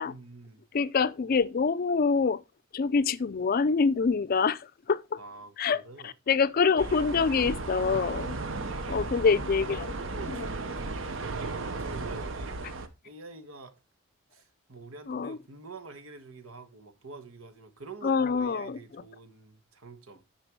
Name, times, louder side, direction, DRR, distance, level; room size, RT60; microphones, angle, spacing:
voice 1, 0.0-0.6 5.2-6.1 8.4-12.6 13.0-13.8 14.3-20.2, right 3 dB, 90° right, 1.3 m, -47 dB
voice 2, 0.7-2.4 2.7-5.2 5.6-8.4 8.9-9.9 10.3-10.5 15.1-15.4 18.0-18.8, left 5 dB, 45° left, 0.4 m, -26 dB
sound 1, 6.8-12.9, right 3 dB, 65° right, 0.9 m, -35 dB
9.9 x 4.4 x 4.5 m
head